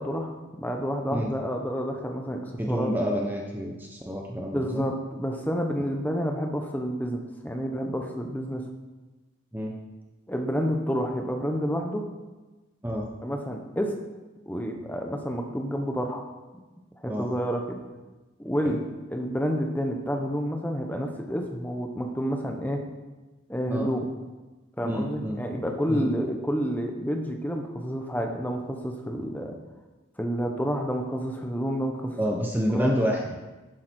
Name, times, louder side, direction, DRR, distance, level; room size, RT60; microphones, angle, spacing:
voice 1, 0.0-2.9 4.5-8.6 10.3-12.0 13.2-14.0 14.5-16.2 17.0-17.8 18.4-22.8 23.5-24.1 24.8-29.5 30.2-32.2 32.7-32.9, equal, 10° left, 3 dB, 1.2 m, -29 dB
voice 2, 2.6-4.8 9.5-9.7 12.8-13.1 17.1-17.3 18.6-18.7 23.7-23.9 24.8-25.4 25.9-26.1 32.2-33.2, equal, 10° right, -1 dB, 0.9 m, -28 dB
11.5 x 10.5 x 4.5 m, 1.2 s
head